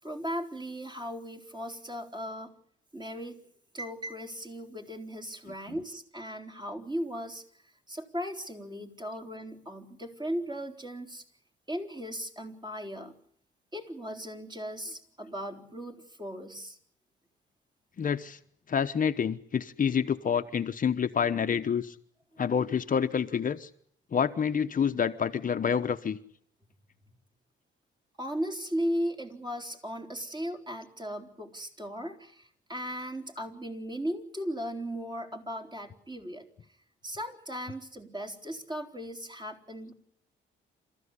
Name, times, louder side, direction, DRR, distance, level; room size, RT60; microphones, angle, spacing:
voice 1, 0.0-2.5 2.9-3.4 3.7-7.4 7.9-11.2 11.7-13.1 13.7-16.8 22.3-22.4 28.2-36.5 37.0-39.9, equal, 20° right, 3 dB, 4.1 m, -37 dB
voice 2, 18.0-18.4 18.7-21.9 22.4-23.7 24.1-26.2, left 7 dB, 45° left, 8 dB, 1.0 m, -28 dB
28.5 x 14.0 x 9.8 m, 0.68 s
cardioid pair, 90°, 20 cm